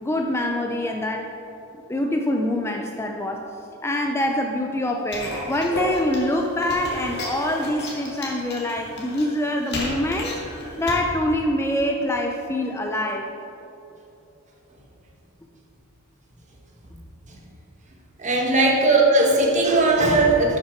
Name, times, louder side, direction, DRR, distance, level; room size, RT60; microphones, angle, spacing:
voice 1, 0.0-1.3 1.9-3.5 3.8-10.4 10.8-13.3 18.5-18.6, left 1 dB, 10° left, 2 dB, 0.4 m, -25 dB
sound 1, 5.1-11.0, left 1 dB, 50° left, 1.9 m, -33 dB
voice 2, 18.2-20.6, right 2 dB, 35° right, -1 dB, 1.4 m, -18 dB
12.0 x 5.6 x 4.5 m, 2.9 s
head